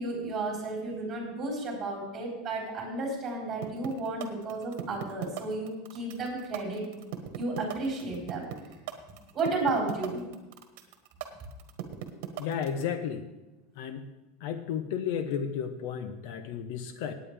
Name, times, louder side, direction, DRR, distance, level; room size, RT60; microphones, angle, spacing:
voice 1, 0.0-7.0 7.3-8.5 9.3-10.2, right 2 dB, 20° right, -2 dB, 4.1 m, -33 dB
sound 1, 3.6-12.8, right 14 dB, 60° right, 1.4 m, -37 dB
voice 2, 12.4-13.2 13.8-14.0 14.4-17.1, left 7 dB, 60° left, 10 dB, 0.9 m, -33 dB
17.5 x 9.2 x 3.5 m, 1.1 s
supercardioid pair, 160°, 0 cm